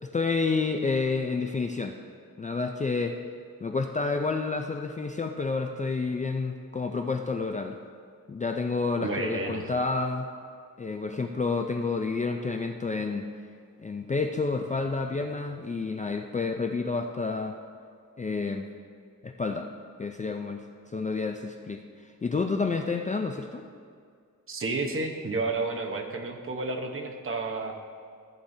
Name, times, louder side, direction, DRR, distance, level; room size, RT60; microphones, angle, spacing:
voice 1, 0.0-1.9 2.4-3.2 3.6-7.8 8.3-10.3 10.8-13.2 13.8-17.6 18.2-18.7 19.2-19.7 20.0-21.8 22.2-23.7, left 4 dB, 20° left, 4 dB, 0.4 m, -29 dB
voice 2, 9.0-9.7 24.5-27.7, right 3 dB, 40° right, 3 dB, 1.0 m, -31 dB
14.5 x 8.7 x 2.7 m, 2.2 s
wide cardioid pair, 135°, 35 cm